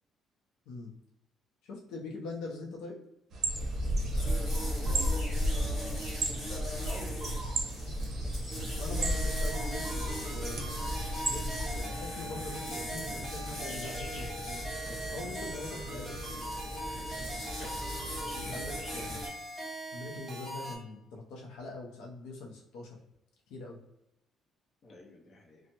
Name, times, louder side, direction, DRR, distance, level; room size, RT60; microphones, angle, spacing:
voice 1, 1.6-3.0 8.8-10.6 11.2-11.5 11.7-16.5 18.3-19.2 19.9-23.0 23.5-23.8, left 2 dB, 90° left, -1 dB, 0.5 m, -43 dB
sound 1, 3.3-11.8, right 1 dB, 45° right, 0.6 m, -33 dB
sound 2, 3.5-19.3, equal, 25° left, 1.4 m, -40 dB
voice 2, 4.1-7.4 17.2-17.4 24.8-25.6, left 2 dB, 40° left, -1 dB, 0.7 m, -47 dB
sound 3, 9.0-20.7, right 1 dB, 20° right, 1.0 m, -41 dB
3.2 x 2.0 x 2.8 m, 0.86 s
cardioid pair, 155°, 0 cm